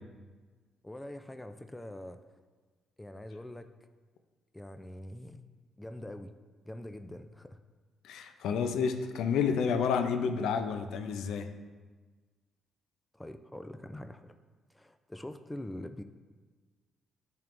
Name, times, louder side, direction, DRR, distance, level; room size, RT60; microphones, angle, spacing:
voice 1, 0.8-2.2 3.0-3.7 4.5-5.4 5.8-6.3 6.6-7.6 13.1-14.3 14.7-16.0, left 1 dB, 10° left, 8 dB, 0.3 m, -44 dB
voice 2, 8.0-11.5, left 6 dB, 85° left, 7 dB, 0.4 m, -30 dB
10.5 x 3.6 x 2.5 m, 1.4 s
cardioid pair, 90°, 0 cm